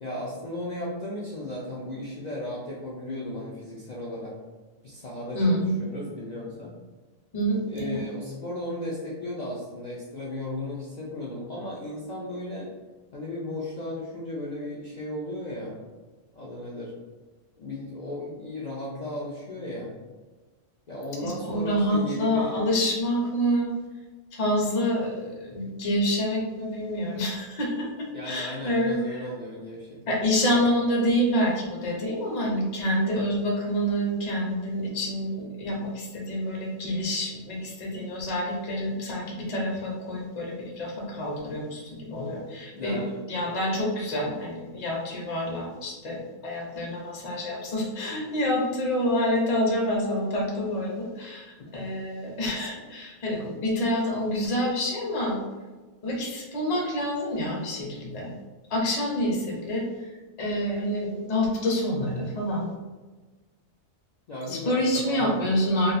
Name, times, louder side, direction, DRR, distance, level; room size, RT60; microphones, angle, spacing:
voice 1, 0.0-4.4 4.8-6.7 7.7-12.7 13.1-15.8 16.3-16.9 17.6-20.0 20.9-22.5 28.1-30.6 42.7-43.2 44.1-44.3 51.6-51.7 64.3-65.4, left 1 dB, 80° left, -5 dB, 0.3 m, -35 dB
voice 2, 5.3-5.7 7.3-8.0 21.2-23.7 24.3-29.2 30.1-43.0 43.3-51.4 51.7-55.4 56.0-58.3 58.7-59.9 60.4-62.7 64.5-65.9, equal, 40° left, -2 dB, 0.6 m, -27 dB
2.4 x 2.4 x 4.0 m, 1.3 s
omnidirectional pair, 1.4 m